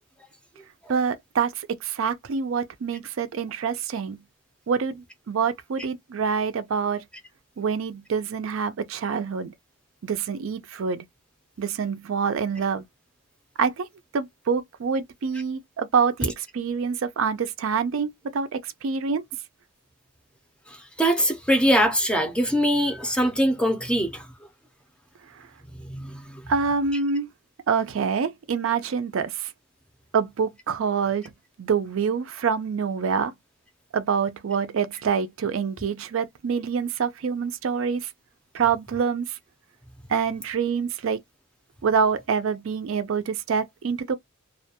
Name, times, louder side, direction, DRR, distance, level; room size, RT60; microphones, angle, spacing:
voice 1, 0.9-4.2 4.7-7.0 7.6-9.5 10.0-11.0 11.6-12.8 13.6-13.9 14.1-19.2 25.4-25.5 26.5-27.3 27.7-29.5 30.1-31.3 31.6-33.3 33.9-38.1 38.5-39.4 40.1-41.2 41.8-44.2, right 6 dB, 70° right, 0.4 m, -26 dB
voice 2, 20.7-24.3 25.9-26.4, equal, 5° left, 0.5 m, -23 dB
2.4 x 2.2 x 2.7 m
head